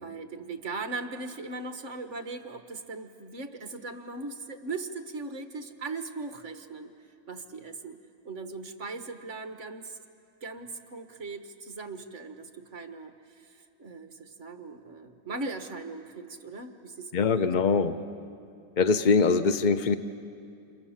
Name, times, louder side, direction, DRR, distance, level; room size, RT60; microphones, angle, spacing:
voice 1, 0.0-6.9 7.3-8.0 8.2-10.0 10.4-17.1 17.4-17.5 17.9-18.1, right 3 dB, 45° right, 7 dB, 1.6 m, -39 dB
voice 2, 17.1-17.9 18.8-20.0, left 5 dB, 80° left, 11 dB, 0.4 m, -23 dB
29.5 x 28.0 x 7.3 m, 2.5 s
omnidirectional pair, 1.9 m